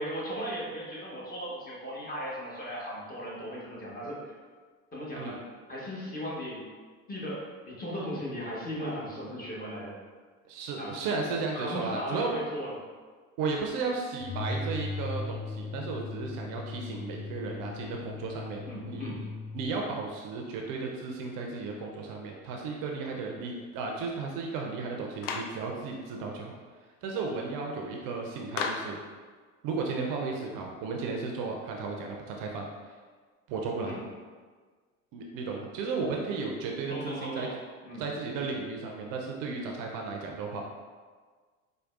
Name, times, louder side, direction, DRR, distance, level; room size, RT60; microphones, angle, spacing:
voice 1, 0.0-4.3 4.9-5.4 5.7-6.7 7.1-9.9 10.8-11.0 11.5-12.8 18.6-19.2 33.8-34.0 36.9-37.6 37.8-38.0, equal, 20° left, -6 dB, 1.1 m, -37 dB
voice 2, 10.5-12.3 13.4-19.1 19.5-26.6 27.0-29.0 29.6-32.7 33.5-34.0 35.1-37.5 38.0-40.6, right 4 dB, 50° right, 0 dB, 0.5 m, -34 dB
sound 1, 14.2-19.8, left 3 dB, ahead, 0.5 m, -38 dB
Clapping, 25.2-25.6 28.6-29.0, left 5 dB, 60° left, 0.5 m, -33 dB
4.4 x 2.2 x 2.4 m, 1.5 s
hypercardioid pair, 70°, 42 cm